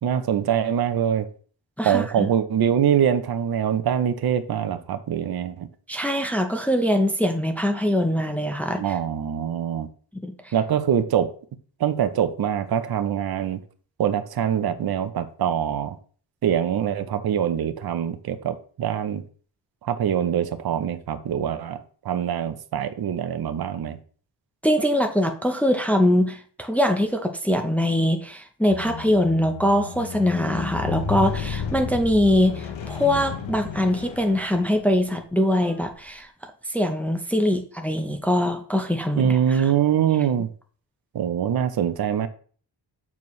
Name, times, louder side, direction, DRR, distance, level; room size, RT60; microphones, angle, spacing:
voice 1, 0.0-1.3 1.8-5.7 8.8-9.9 10.5-11.3 11.8-13.6 14.0-16.0 16.4-19.2 19.8-24.0 39.2-40.5 41.1-42.3, right 9 dB, 55° right, 10 dB, 0.7 m, -24 dB
voice 2, 1.8-2.3 5.9-8.8 10.1-10.5 24.6-36.3 36.7-39.6, left 1 dB, 5° left, 4 dB, 0.6 m, -23 dB
Squeak, 28.7-35.0 35.8-35.9, left 6 dB, 80° left, 1.0 m, -32 dB
7.1 x 4.4 x 3.1 m, 0.43 s
wide cardioid pair, 115°, 45 cm